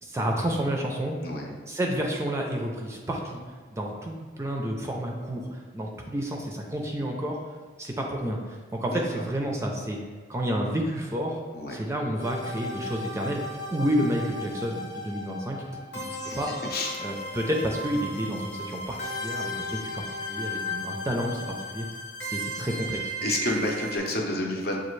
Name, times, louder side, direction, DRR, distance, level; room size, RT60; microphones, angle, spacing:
voice 1, 0.0-1.2 1.7-3.4 3.7-7.4 7.8-10.0 10.3-11.4 11.7-13.4 13.7-15.6 15.9-16.5 17.0-21.9 22.2-23.0, equal, 15° right, 0 dB, 0.4 m, -30 dB
voice 2, 1.2-1.6 8.9-9.0 11.5-11.8 16.3-16.4 16.7-17.0 23.2-24.8, left 2 dB, 55° left, 0 dB, 0.7 m, -29 dB
sound 1, 12.2-24.0, equal, 70° left, 1.1 m, -35 dB
6.8 x 2.4 x 3.1 m, 1.5 s
head